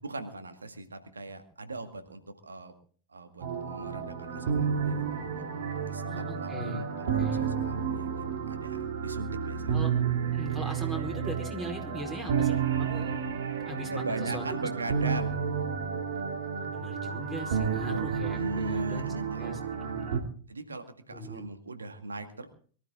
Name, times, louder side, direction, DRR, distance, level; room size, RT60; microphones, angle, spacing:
voice 1, 0.0-2.7 3.1-5.3 5.8-9.8 13.9-15.4 18.4-19.6 20.5-22.5, right 2 dB, 75° right, 7 dB, 1.9 m, -39 dB
sound 1, 3.4-20.2, right 7 dB, 60° right, 2.7 m, -31 dB
voice 2, 6.1-6.8 7.2-7.4 9.7-9.9 10.3-13.1 13.5-14.4 15.0-15.2 16.6-20.2 21.1-21.5, right 1 dB, 15° right, 5 dB, 4.7 m, -39 dB
23.5 x 13.0 x 3.7 m, 0.43 s
figure-of-eight pair, 90°, 0 cm